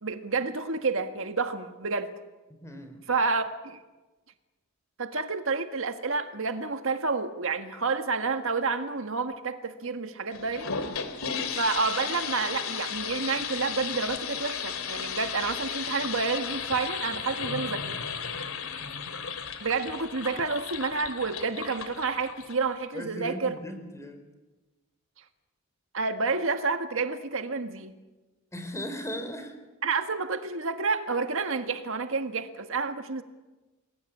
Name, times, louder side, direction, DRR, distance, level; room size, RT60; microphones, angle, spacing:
voice 1, 0.0-2.1 3.1-3.8 5.0-10.7 11.5-18.0 19.6-23.5 25.9-27.9 29.8-33.2, right 4 dB, 70° right, 8 dB, 1.7 m, -29 dB
voice 2, 2.6-3.0 11.2-11.5 18.8-19.1 22.9-24.2 28.5-29.5, equal, 15° left, 6 dB, 4.2 m, -38 dB
sound 1, 10.3-22.8, left 7 dB, 75° left, 2.9 m, -35 dB
30.0 x 21.5 x 8.6 m, 1.2 s
head